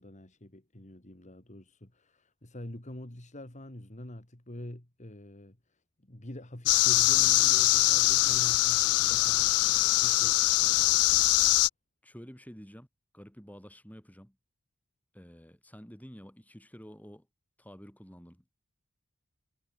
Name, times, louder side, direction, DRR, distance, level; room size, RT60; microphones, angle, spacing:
voice 1, 0.0-11.3, left 1 dB, 35° left, 2.2 m, -46 dB
sound 1, 6.7-11.7, left 17 dB, 90° left, 0.5 m, -23 dB
voice 2, 12.0-12.9 13.1-14.3 15.1-17.3 17.6-18.5, equal, 5° left, 6.6 m, -49 dB
head